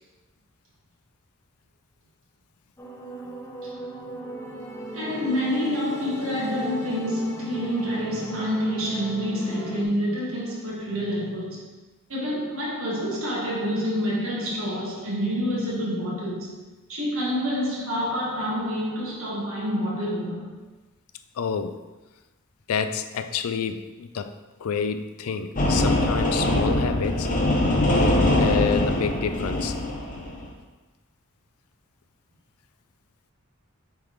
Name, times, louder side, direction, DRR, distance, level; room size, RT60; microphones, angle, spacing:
sound 1, 2.8-9.8, equal, 15° left, 0.6 m, -38 dB
voice 1, 4.9-11.7 12.1-16.5 16.9-20.5, equal, 75° right, -5 dB, 1.7 m, -27 dB
voice 2, 21.4-21.8 22.7-27.3 27.7-29.7, left 6 dB, 85° left, 9 dB, 0.4 m, -28 dB
sound 2, 25.6-30.4, left 1 dB, 40° left, 0.9 m, -22 dB
8.6 x 3.6 x 3.2 m, 1.2 s
head